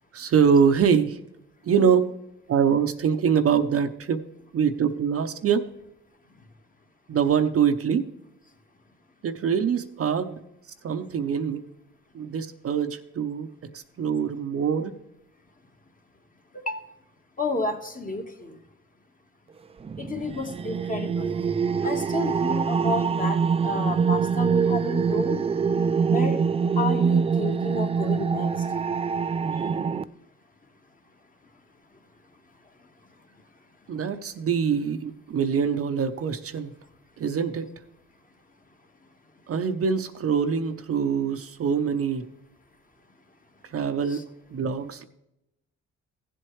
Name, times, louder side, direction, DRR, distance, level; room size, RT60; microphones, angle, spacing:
voice 1, 0.1-1.2 1.6-2.1 2.5-4.2 4.5-5.7 7.1-8.1 9.2-10.4 10.8-11.7 12.1-13.5 13.7-14.9 33.9-36.7 37.2-37.7 39.5-42.3 43.6-45.0, right 7 dB, 50° right, 8 dB, 0.8 m, -24 dB
voice 2, 17.4-18.6 20.0-21.4 21.8-23.4 23.6-25.4 26.1-26.4 26.8-28.7 29.5-29.7, left 3 dB, 30° left, 4 dB, 1.5 m, -31 dB
sound 1, 19.8-30.0, right 6 dB, 20° right, 0.3 m, -24 dB
15.5 x 7.7 x 3.2 m, 0.84 s
cardioid pair, 90°, 30 cm